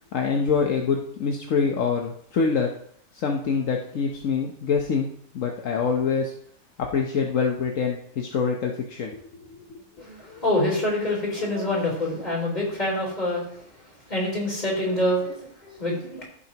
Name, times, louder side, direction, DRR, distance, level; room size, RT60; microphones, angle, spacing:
voice 1, 0.1-2.7 3.1-5.1 5.3-6.3 6.8-9.2 9.5-9.6, left 5 dB, 75° left, 1 dB, 1.3 m, -25 dB
voice 2, 10.0-13.4 14.1-16.2, left 1 dB, 30° left, -4 dB, 3.9 m, -26 dB
15.0 x 7.1 x 2.9 m, 0.64 s
omnidirectional pair, 1.4 m